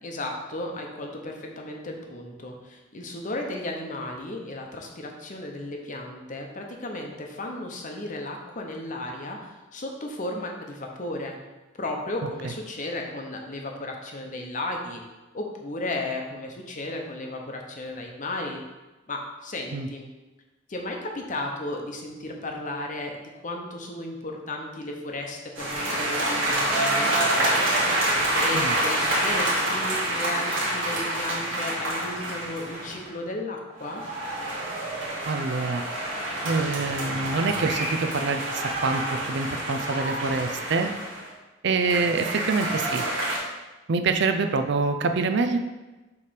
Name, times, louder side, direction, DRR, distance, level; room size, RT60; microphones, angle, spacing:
voice 1, 0.0-11.4 11.8-15.0 15.3-18.6 19.1-20.1 20.7-23.1 23.4-27.6 28.4-34.0, left 2 dB, 40° left, 2 dB, 0.9 m, -34 dB
sound 1, 25.6-33.1 33.8-41.3 41.8-43.4, right 1 dB, 80° right, 2.0 m, -27 dB
voice 2, 35.3-35.8 36.4-40.9 41.6-43.0 43.9-45.6, right 4 dB, 60° right, 6 dB, 0.5 m, -26 dB
7.0 x 3.3 x 5.1 m, 1.1 s
head